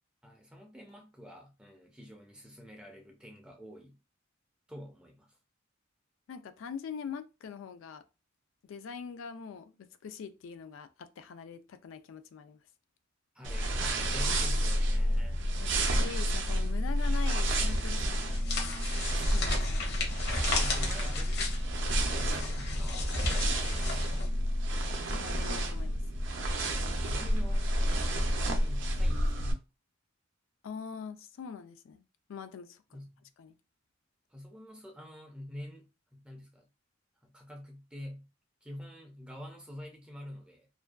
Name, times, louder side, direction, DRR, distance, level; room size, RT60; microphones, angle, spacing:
voice 1, 0.2-4.0 4.7-5.4 13.3-15.4 20.5-21.6 22.1-24.3 26.7-27.7 27.9-28.0 28.4-29.5 32.9-33.3 34.3-36.7 37.2-38.3 38.6-40.7, equal, 5° right, 0.4 m, -48 dB
voice 2, 6.3-8.0 8.6-12.6 15.6-18.8 19.3-20.0 25.1-26.0 30.6-32.0 32.3-33.0 33.4-33.6, left 6 dB, 90° left, 0.3 m, -43 dB
sound 1, 13.4-29.5, equal, 65° right, 0.4 m, -30 dB
sound 2, 17.5-24.3, left 3 dB, 60° left, 0.7 m, -36 dB
2.5 x 2.2 x 2.3 m
head